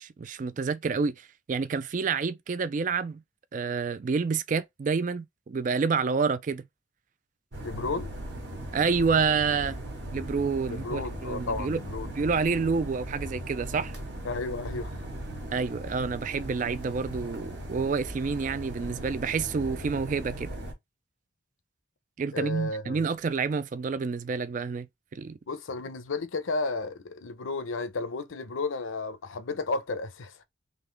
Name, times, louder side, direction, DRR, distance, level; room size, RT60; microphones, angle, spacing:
voice 1, 0.0-3.2 3.5-6.7 8.7-9.8 10.1-11.8 12.1-13.9 15.5-20.5 22.2-24.9 25.1-25.4, right 5 dB, 40° right, 0.3 m, -28 dB
sound 1, 7.5-20.7, right 1 dB, 60° right, 1.3 m, -38 dB
voice 2, 7.6-8.2 10.7-12.1 14.2-15.1 22.3-23.0 25.5-30.4, left 3 dB, 90° left, 0.7 m, -33 dB
3.8 x 2.9 x 3.3 m
head